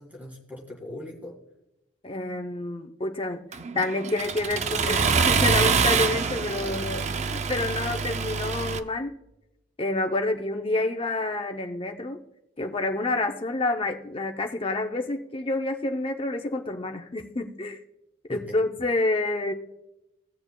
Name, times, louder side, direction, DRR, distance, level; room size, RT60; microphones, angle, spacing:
voice 1, 0.0-1.3 6.6-7.1 18.3-18.6, left 1 dB, 5° right, 1 dB, 2.0 m, -40 dB
voice 2, 2.0-3.5 3.8-7.1 7.3-9.1 9.8-12.2 12.6-17.8 18.3-19.5, left 2 dB, 25° left, 4 dB, 0.6 m, -28 dB
Accelerating revving vroom, 3.5-8.8, right 5 dB, 35° right, 0.4 m, -25 dB
19.5 x 7.0 x 2.2 m, 0.90 s
head